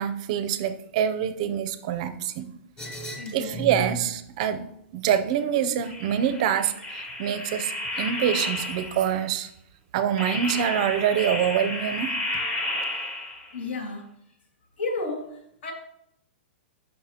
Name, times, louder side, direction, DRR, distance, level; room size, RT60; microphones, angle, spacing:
voice 1, 0.0-2.5 3.3-4.7 4.9-9.5 9.9-12.1, right 9 dB, 35° right, 10 dB, 0.5 m, -25 dB
sound 1, 2.8-4.1 5.8-9.2 10.2-13.6, left 1 dB, 15° left, 0.7 m, -32 dB
voice 2, 3.1-3.8 13.5-14.1 14.8-15.7, left 3 dB, 75° left, 2 dB, 2.2 m, -33 dB
13.0 x 5.5 x 2.9 m, 0.76 s
hypercardioid pair, 175°, 6 cm